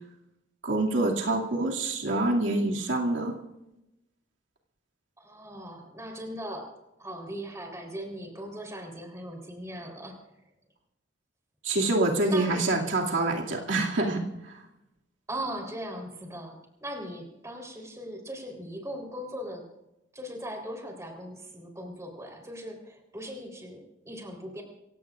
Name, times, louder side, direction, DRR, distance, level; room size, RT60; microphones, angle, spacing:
voice 1, 0.6-3.3 11.6-14.5, right 2 dB, 70° right, -1 dB, 2.4 m, -26 dB
voice 2, 5.2-6.7 7.0-10.5 12.3-12.9 15.3-19.7 20.1-24.6, equal, 15° right, 2 dB, 3.7 m, -39 dB
27.5 x 16.5 x 2.5 m, 0.92 s
head